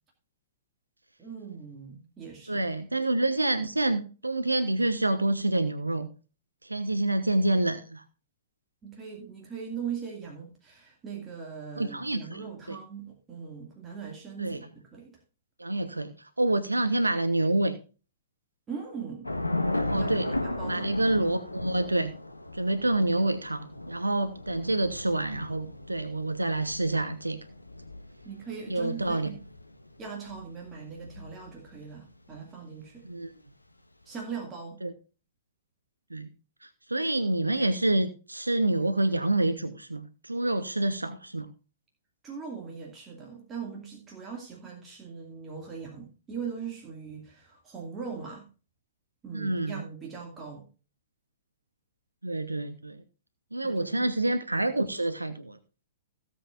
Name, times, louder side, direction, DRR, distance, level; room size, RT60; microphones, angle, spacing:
voice 1, 1.2-2.6 8.8-15.2 18.7-19.3 20.0-21.2 28.2-29.4 30.0-33.1 34.1-34.8 42.2-48.5 49.2-50.7 53.6-54.1, right 6 dB, 15° right, -1 dB, 2.5 m, -40 dB
voice 2, 2.5-6.1 6.6-8.0 11.8-12.8 14.4-14.6 15.6-16.1 16.4-17.8 19.8-20.3 20.7-22.1 22.5-27.4 28.7-29.3 33.1-33.3 34.8-34.9 36.1-36.3 36.6-41.5 49.3-49.8 52.2-53.0 53.5-55.6, right 2 dB, 80° right, 10 dB, 1.1 m, -27 dB
Thunder / Rain, 19.2-31.8, left 1 dB, 85° left, 1.3 m, -36 dB
17.0 x 7.6 x 2.6 m, 0.34 s
figure-of-eight pair, 110°, 0 cm